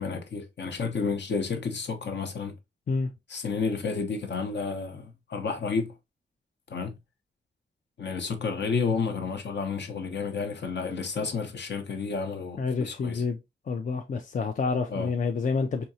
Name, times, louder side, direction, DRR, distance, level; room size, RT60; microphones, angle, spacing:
voice 1, 0.0-2.5 3.3-5.9 6.7-7.0 8.0-13.2 14.9-15.1, left 5 dB, 60° left, 0.8 m, -31 dB
voice 2, 12.6-13.4 13.7-15.9, left 4 dB, 40° left, 0.4 m, -28 dB
4.3 x 2.8 x 2.7 m
wide cardioid pair, 150°, 20 cm